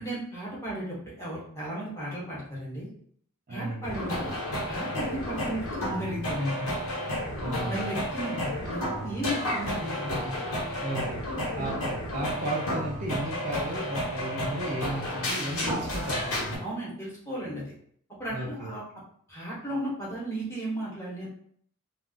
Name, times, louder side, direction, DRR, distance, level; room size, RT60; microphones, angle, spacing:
voice 1, 0.0-2.9 3.5-4.3 4.7-6.7 7.6-10.4 11.6-11.7 16.6-17.7 18.2-18.8 19.3-21.3, right 1 dB, 10° left, -7 dB, 1.0 m, -35 dB
voice 2, 3.5-3.9 7.4-7.9 10.8-11.2 11.5-16.7 18.3-18.8, right 1 dB, 35° right, -3 dB, 0.5 m, -34 dB
sound 1, 3.8-16.6, left 1 dB, 75° left, 1.2 m, -32 dB
2.4 x 2.3 x 3.9 m, 0.63 s
head